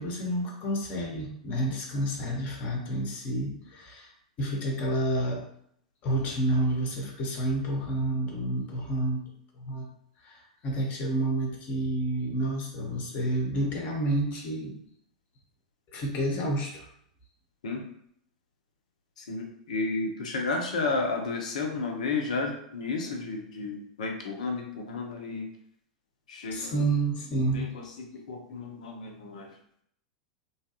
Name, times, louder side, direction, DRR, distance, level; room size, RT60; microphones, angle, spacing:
voice 1, 0.0-4.1 4.4-5.5 6.0-9.2 9.6-9.9 10.2-14.7 15.9-16.9 26.5-27.7 28.1-28.2, right 1 dB, 40° left, 0 dB, 0.9 m, -29 dB
voice 2, 19.2-25.5 26.3-26.9 27.5-29.6, left 3 dB, 70° left, 2 dB, 0.7 m, -32 dB
3.1 x 2.3 x 2.9 m, 0.69 s
figure-of-eight pair, 95°, 4 cm